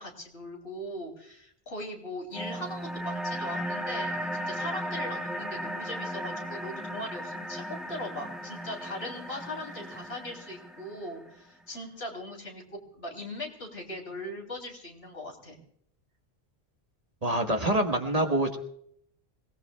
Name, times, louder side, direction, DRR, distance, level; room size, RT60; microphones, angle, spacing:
voice 1, 0.0-12.6 12.9-15.6, left 1 dB, 65° left, 2 dB, 3.5 m, -39 dB
sound 1, 2.3-11.3, equal, ahead, 2.1 m, -36 dB
voice 2, 17.2-18.6, right 1 dB, 35° right, 4 dB, 1.4 m, -26 dB
27.0 x 18.5 x 2.3 m, 0.68 s
omnidirectional pair, 1.1 m